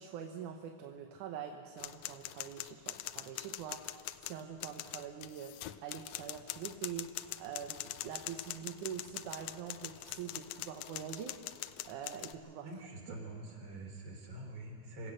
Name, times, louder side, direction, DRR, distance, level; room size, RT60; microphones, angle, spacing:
voice 1, 0.0-12.7, right 8 dB, 75° right, 4 dB, 2.4 m, -45 dB
sound 1, 1.8-12.3, left 14 dB, 80° left, 1.6 m, -43 dB
voice 2, 12.6-15.1, right 2 dB, 45° right, 0 dB, 4.6 m, -45 dB
26.5 x 16.5 x 6.5 m, 2.7 s
omnidirectional pair, 3.6 m